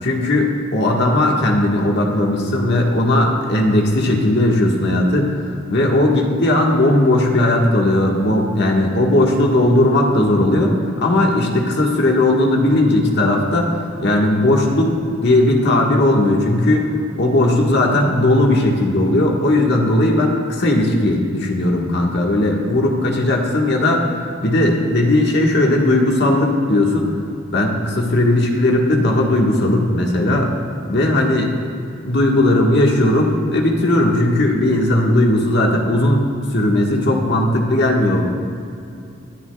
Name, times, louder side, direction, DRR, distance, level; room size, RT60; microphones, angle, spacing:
voice 1, 0.0-5.4 5.7-10.7 11.0-13.7 14.0-14.9 15.2-16.9 17.2-24.1 24.4-27.1 27.5-30.5 30.9-31.5 32.0-36.2 36.5-38.2, left 1 dB, 55° left, 0 dB, 1.5 m, -17 dB
23.5 x 9.9 x 2.3 m, 2.6 s
head